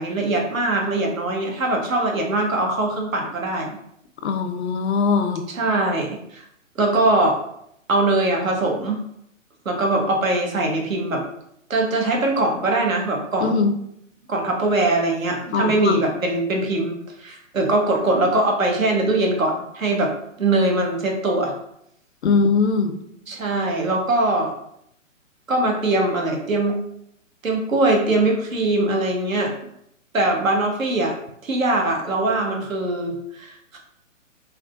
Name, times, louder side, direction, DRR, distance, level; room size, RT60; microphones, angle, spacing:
voice 1, 0.0-3.7 5.5-6.4 6.8-7.4 7.9-9.0 9.6-11.2 11.7-13.7 14.3-20.1 20.4-21.5 23.3-24.5 25.5-26.8 27.4-29.5 30.1-31.1 31.4-33.8, right 2 dB, 85° right, 1 dB, 0.9 m, -22 dB
voice 2, 4.2-5.4 13.4-13.7 15.5-16.0 22.2-22.9, left 4 dB, 60° left, 8 dB, 0.4 m, -20 dB
3.5 x 2.1 x 2.4 m, 0.75 s
figure-of-eight pair, 130°, 39 cm